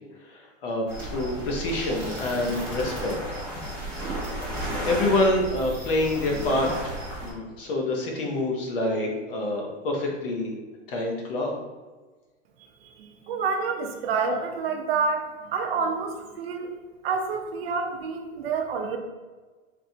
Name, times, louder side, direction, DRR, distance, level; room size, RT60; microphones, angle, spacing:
voice 1, 0.3-3.1 3.8-4.2 4.9-6.9 7.2-10.5 10.9-11.5, left 2 dB, 45° left, 0 dB, 0.9 m, -27 dB
sound 1, 0.9-7.3, right 1 dB, 5° left, 0.7 m, -33 dB
voice 2, 12.8-16.7 17.0-19.0, right 5 dB, 50° right, 4 dB, 0.7 m, -28 dB
4.3 x 3.2 x 2.7 m, 1.3 s
supercardioid pair, 165°, 38 cm